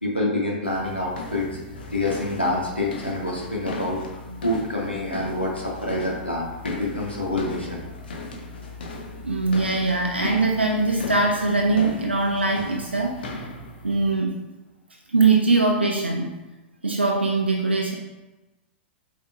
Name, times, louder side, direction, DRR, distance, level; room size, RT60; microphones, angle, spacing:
voice 1, 0.0-1.5 1.9-4.0 4.4-7.8, left 1 dB, 90° left, -4 dB, 1.7 m, -27 dB
sound 1, 0.6-14.1, left 2 dB, 60° left, 1.2 m, -37 dB
voice 2, 9.2-13.2 13.8-14.3 15.1-16.3 16.8-17.9, right 3 dB, 85° right, 0 dB, 0.8 m, -22 dB
8.3 x 4.6 x 2.5 m, 1.0 s
figure-of-eight pair, 100°, 6 cm